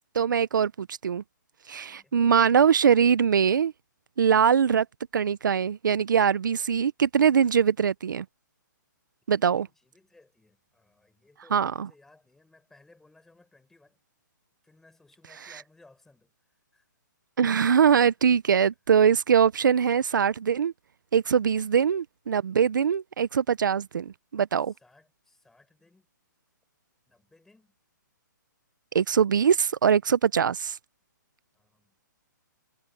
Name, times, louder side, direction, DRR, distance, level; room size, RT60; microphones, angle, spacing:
voice 1, 0.1-1.2 1.7-3.7 4.2-4.9 5.1-8.2 9.3-9.7 11.5-11.9 17.4-20.7 21.1-24.7 28.9-30.8, right 7 dB, 75° right, 0.8 m, -22 dB
voice 2, 9.4-14.0 14.6-16.3 16.7-16.9 24.6-26.1 27.1-27.8 31.5-32.0, left 2 dB, 5° left, 7.8 m, -60 dB
hypercardioid pair, 165°, 11 cm